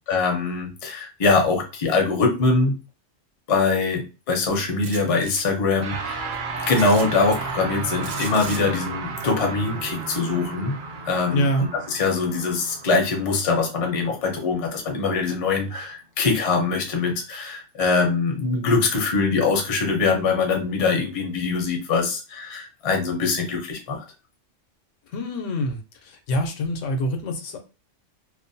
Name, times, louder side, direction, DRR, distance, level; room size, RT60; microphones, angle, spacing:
voice 1, 0.1-2.7 3.5-6.3 6.7-10.8 11.1-24.0, left 4 dB, 40° left, 2 dB, 0.5 m, -23 dB
sound 1, 4.8-5.4 6.7-7.1 8.0-8.6, right 5 dB, 80° right, 0.9 m, -36 dB
sound 2, 5.8-15.3, right 4 dB, 60° right, 0.5 m, -34 dB
voice 2, 11.3-11.7 25.1-25.8 26.0-27.6, equal, 85° left, 5 dB, 1.0 m, -25 dB
2.5 x 2.1 x 2.6 m, 0.31 s
omnidirectional pair, 1.3 m